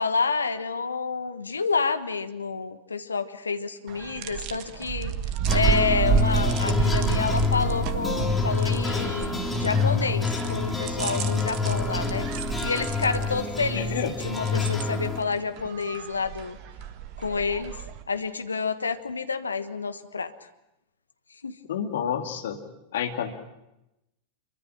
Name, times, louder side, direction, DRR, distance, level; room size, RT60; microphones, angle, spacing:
voice 1, 0.0-5.1 5.5-12.3 12.6-14.0 14.2-16.6 17.2-17.7 18.1-20.3 21.4-21.5, left 4 dB, 75° left, 10 dB, 1.3 m, -29 dB
sound 1, 3.9-18.0, right 8 dB, 40° right, 1.5 m, -31 dB
sound 2, 5.5-15.2, left 4 dB, 10° left, 3.5 m, -27 dB
voice 2, 13.7-14.2 21.7-22.6 22.9-23.3, left 8 dB, 60° left, 5 dB, 2.4 m, -29 dB
26.0 x 23.5 x 6.1 m, 0.90 s
figure-of-eight pair, 90°, 0 cm